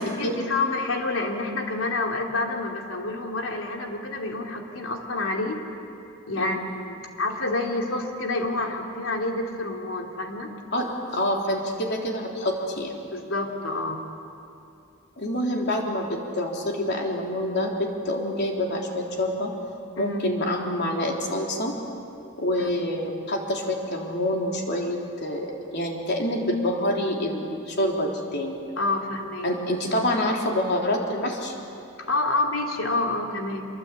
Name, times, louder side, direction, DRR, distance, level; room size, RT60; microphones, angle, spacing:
voice 1, 0.0-5.6 6.3-10.5 13.1-14.0 19.9-20.2 22.6-22.7 28.8-29.5 32.0-33.7, left 2 dB, 90° left, 1 dB, 3.0 m, -28 dB
voice 2, 10.7-13.0 15.2-19.5 20.0-21.8 22.4-28.6 29.4-31.5, left 1 dB, 55° left, 0 dB, 3.5 m, -27 dB
26.0 x 23.0 x 8.5 m, 2.7 s
head